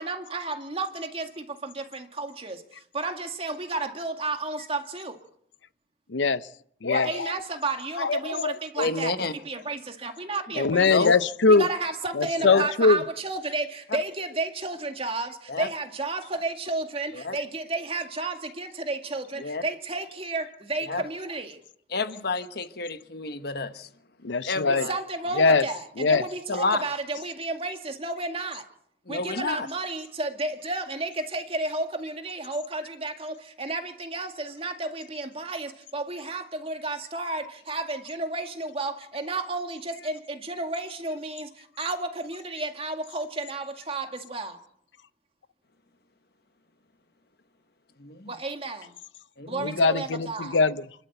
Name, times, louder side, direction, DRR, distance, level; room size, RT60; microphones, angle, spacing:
voice 1, 0.0-2.6 2.9-5.2 6.9-11.1 11.6-21.6 24.9-28.6 29.1-44.6 48.3-49.0 49.5-50.6, right 2 dB, 30° right, 2.1 m, -32 dB
voice 2, 6.1-6.5 6.8-7.3 8.0-8.6 10.6-11.7 12.1-13.0 24.2-24.9 25.3-25.6 26.0-26.2 49.6-50.9, left 4 dB, 80° left, 0.7 m, -22 dB
voice 3, 8.8-9.3 10.8-11.1 12.4-12.7 13.9-14.0 15.5-15.7 17.1-17.4 19.4-19.6 20.9-21.0 21.9-23.9 24.5-24.9 26.5-26.8 29.1-29.7 48.0-48.3 49.4-49.7, left 3 dB, 55° left, 1.2 m, -29 dB
28.5 x 12.0 x 8.1 m
head